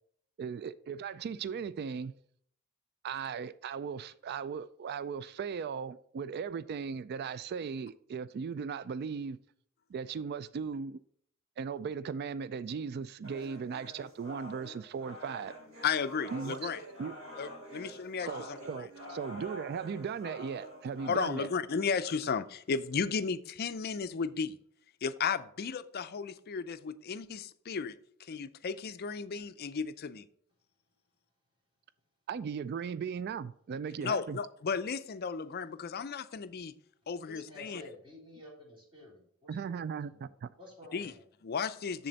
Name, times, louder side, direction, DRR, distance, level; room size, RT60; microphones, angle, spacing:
voice 1, 0.4-2.1 3.0-9.4 9.9-11.0 11.6-15.5 16.3-16.6 17.0-17.1 18.3-21.5 32.3-34.4 39.5-40.5, right 6 dB, 50° right, 0.3 m, -37 dB
sound 1, 13.2-21.2, equal, 80° right, 3.8 m, -46 dB
voice 2, 15.8-16.8 17.4-18.9 21.1-24.6 25.0-30.2 34.0-36.7 37.1-37.8 40.9-41.1 41.4-42.1, left 5 dB, 50° left, 0.5 m, -34 dB
voice 3, 37.3-41.2, left 1 dB, 25° right, 3.3 m, -52 dB
7.5 x 6.8 x 4.0 m
head